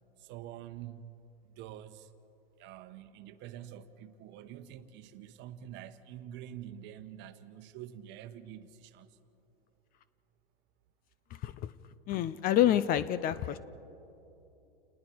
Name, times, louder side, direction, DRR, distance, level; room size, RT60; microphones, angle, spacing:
voice 1, 0.2-1.1 1.6-2.1 2.6-9.1, right 11 dB, 40° right, 11 dB, 1.1 m, -46 dB
voice 2, 12.1-13.6, left 11 dB, 30° left, 16 dB, 0.5 m, -27 dB
29.5 x 19.5 x 4.6 m, 2.9 s
hypercardioid pair, 115°, 30 cm